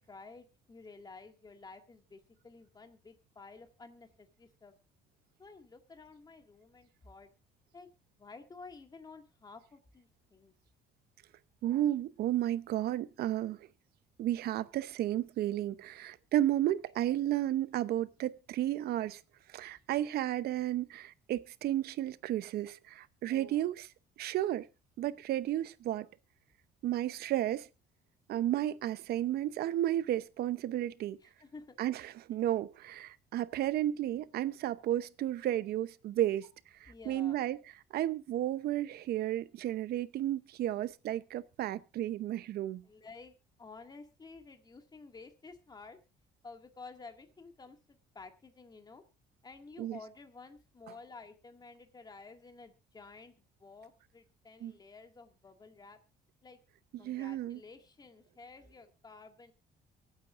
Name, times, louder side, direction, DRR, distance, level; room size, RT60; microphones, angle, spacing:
voice 1, 0.0-4.7 5.4-7.3 7.7-7.9 8.2-10.5 23.3-23.6 31.2-31.8 36.9-37.4 42.9-46.0 46.4-49.0 49.4-53.3 53.6-56.0 56.4-56.6 57.0-59.5, left 4 dB, 25° left, 2.1 m, -52 dB
voice 2, 11.6-13.7 14.2-19.2 19.5-23.9 24.2-24.7 25.0-26.1 26.8-27.7 28.3-31.2 31.8-36.5 36.8-37.6 37.9-42.8 49.8-50.0 54.6-54.7 56.9-57.6, right 13 dB, 70° right, 0.8 m, -33 dB
24.0 x 8.8 x 2.5 m
cardioid pair, 110°, 17 cm